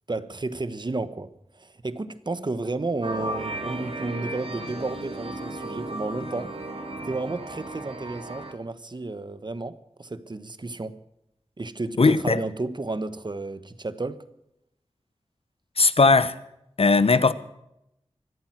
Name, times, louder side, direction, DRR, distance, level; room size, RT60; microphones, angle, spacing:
voice 1, 0.1-1.3 1.6-6.5 7.0-11.0 11.6-14.2, right 3 dB, 45° right, 1.2 m, -32 dB
sound 1, 3.0-8.5, right 1 dB, 65° right, 2.9 m, -35 dB
voice 2, 12.0-12.4 15.8-16.4 16.8-17.3, left 3 dB, 65° left, 1.1 m, -18 dB
25.0 x 8.9 x 6.1 m
wide cardioid pair, 55°, 11 cm